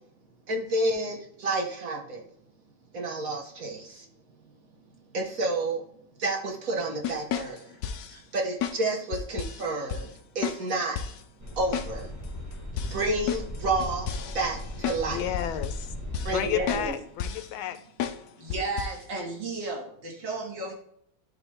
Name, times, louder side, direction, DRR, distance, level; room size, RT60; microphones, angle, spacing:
voice 1, 0.5-2.2 2.9-4.0 5.1-5.8 6.2-7.7 8.1-10.1 10.3-11.0 11.6-12.1 12.9-14.1 14.3-15.4 16.2-17.0, right 2 dB, 45° right, 1.6 m, -30 dB
sound 1, 7.0-8.1 8.6-8.8 9.1-9.6 9.9-10.0 10.4-10.6 11.0-11.2 11.7-11.9 12.2-12.3 12.8-15.0 15.3-15.8 16.1-16.4 16.7-16.9 17.2-17.5 18.0-18.2 18.5-19.0, left 8 dB, 70° left, 1.0 m, -32 dB
sound 2, 11.4-16.9, left 1 dB, 10° right, 1.2 m, -37 dB
voice 2, 15.1-15.9 16.3-17.8, left 11 dB, 90° left, 1.5 m, -31 dB
voice 3, 18.4-20.7, right 3 dB, 65° right, 2.6 m, -34 dB
11.0 x 3.8 x 3.4 m
omnidirectional pair, 2.2 m